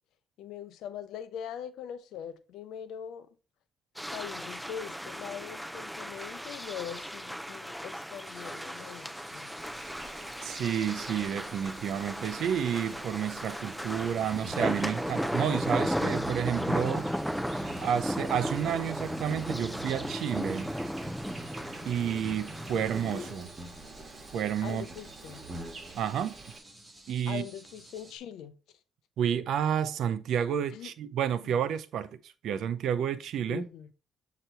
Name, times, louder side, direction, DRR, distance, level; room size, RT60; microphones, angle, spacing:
voice 1, 0.4-3.3 4.1-9.6 22.7-23.5 24.6-25.4 27.3-28.6 30.7-30.9 31.5-31.6 33.5-33.9, left 9 dB, 85° left, 0.6 m, -42 dB
sound 1, 4.0-23.3, equal, ahead, 0.6 m, -35 dB
sound 2, 8.2-28.2, right 1 dB, 15° right, 1.7 m, -53 dB
Insect, 9.6-26.6, right 3 dB, 35° right, 1.6 m, -45 dB
voice 2, 10.4-17.1 17.8-20.7 21.8-23.5 24.3-24.9 25.9-26.4 27.1-27.5 29.2-33.7, right 9 dB, 75° right, 0.6 m, -30 dB
7.9 x 2.9 x 4.4 m
cardioid pair, 90°, 0 cm